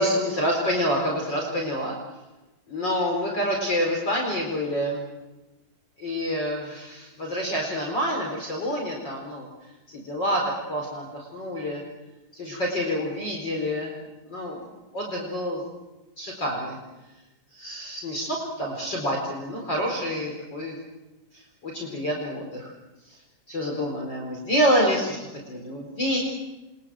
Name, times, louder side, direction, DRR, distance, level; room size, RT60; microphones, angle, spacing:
voice 1, 0.0-2.0 2.7-5.0 6.0-9.5 9.9-10.4 10.7-11.8 12.3-13.9 14.3-14.6 14.9-15.6 16.2-16.8 17.5-20.8 21.3-22.7 23.1-23.2 23.5-26.2, equal, 35° left, 0 dB, 5.0 m, -27 dB
29.0 x 24.5 x 7.8 m, 1.1 s
omnidirectional pair, 3.4 m